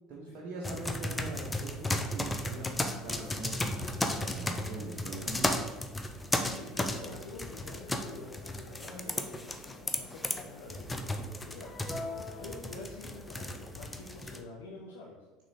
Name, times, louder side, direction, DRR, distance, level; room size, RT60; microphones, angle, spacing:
voice 1, 0.1-5.6, right 2 dB, 50° right, -4 dB, 1.1 m, -42 dB
sound 1, 0.6-14.4, left 1 dB, 15° left, 0.6 m, -35 dB
voice 2, 6.4-11.7 12.4-15.2, left 2 dB, 65° left, -2 dB, 0.8 m, -47 dB
6.1 x 3.8 x 4.2 m, 1.2 s
figure-of-eight pair, 65°, 0 cm